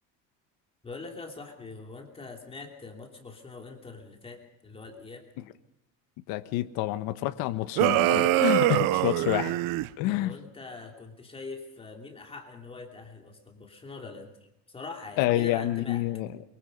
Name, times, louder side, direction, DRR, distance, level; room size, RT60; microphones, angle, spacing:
voice 1, 0.8-5.2 10.0-16.0, left 3 dB, 15° left, 2 dB, 3.0 m, -43 dB
voice 2, 6.3-9.5 10.0-10.3 15.2-16.3, left 15 dB, 70° left, 9 dB, 1.3 m, -28 dB
sound 1, 7.8-9.9, right 16 dB, 60° right, 0.8 m, -23 dB
25.0 x 23.5 x 5.4 m, 0.86 s
cardioid pair, 160°, 37 cm